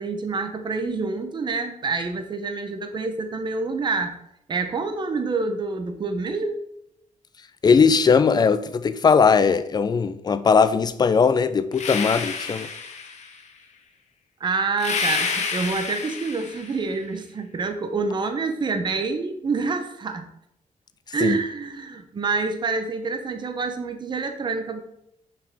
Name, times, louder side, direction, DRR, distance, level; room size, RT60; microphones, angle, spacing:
voice 1, 0.0-4.1 4.5-6.6 14.4-20.3 21.1-24.8, right 4 dB, 35° right, 0.8 m, -27 dB
voice 2, 7.6-12.7 21.2-21.4, left 5 dB, 30° left, 0.4 m, -19 dB
sound 1, 11.7-13.4 14.8-16.8, left 5 dB, 60° left, 1.1 m, -29 dB
6.1 x 5.8 x 3.5 m
cardioid pair, 115°, 13 cm